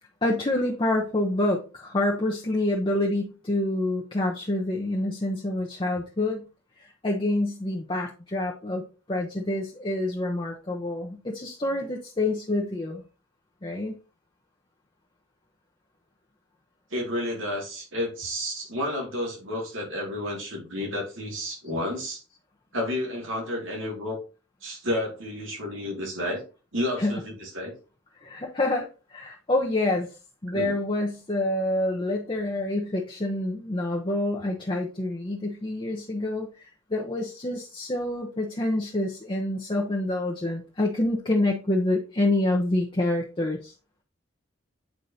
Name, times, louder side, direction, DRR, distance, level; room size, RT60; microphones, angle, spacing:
voice 1, 0.2-6.4 6.8-13.0 13.6-14.0 27.0-27.2 28.2-30.2 30.4-43.7, left 1 dB, 25° left, -1 dB, 0.7 m, -27 dB
voice 2, 16.9-22.2 22.7-24.2 24.6-26.4 26.7-27.7 30.5-30.7, left 1 dB, 85° right, 1 dB, 2.1 m, -31 dB
8.2 x 4.5 x 2.7 m, 0.33 s
head